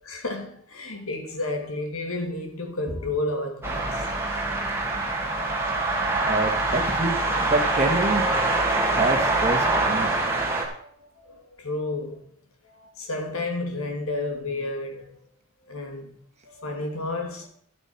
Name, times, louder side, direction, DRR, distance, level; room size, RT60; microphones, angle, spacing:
voice 1, 0.0-4.1 10.2-10.3 10.6-12.2 12.6-15.2 15.7-16.1 16.4-17.5, left 2 dB, 80° left, 2.5 m, -31 dB
sound 1, 3.6-10.7, right 2 dB, 10° right, 2.1 m, -24 dB
voice 2, 6.3-8.3 8.9-10.2, right 2 dB, 30° right, 1.9 m, -27 dB
11.5 x 9.2 x 4.5 m
head